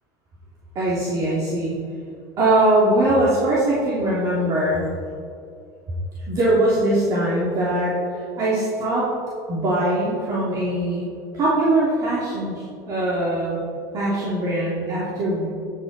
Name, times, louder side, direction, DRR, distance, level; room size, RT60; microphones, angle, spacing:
voice 1, 0.7-1.7 2.4-4.8 6.3-9.1 9.5-11.1 11.3-13.6 13.9-15.5, right 1 dB, 40° right, -7 dB, 3.0 m, -21 dB
16.0 x 9.4 x 4.3 m, 2.4 s
cardioid pair, 145°, 10 cm